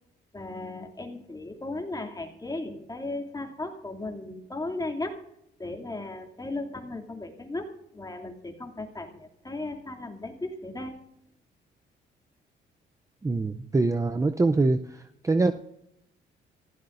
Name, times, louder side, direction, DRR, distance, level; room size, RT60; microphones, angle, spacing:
voice 1, 0.3-5.2 5.6-10.9, left 2 dB, 20° left, 2 dB, 2.7 m, -36 dB
voice 2, 13.2-14.8 15.2-15.5, right 3 dB, 15° right, 8 dB, 0.6 m, -23 dB
26.5 x 15.5 x 2.6 m, 0.83 s
cardioid pair, 90°, 20 cm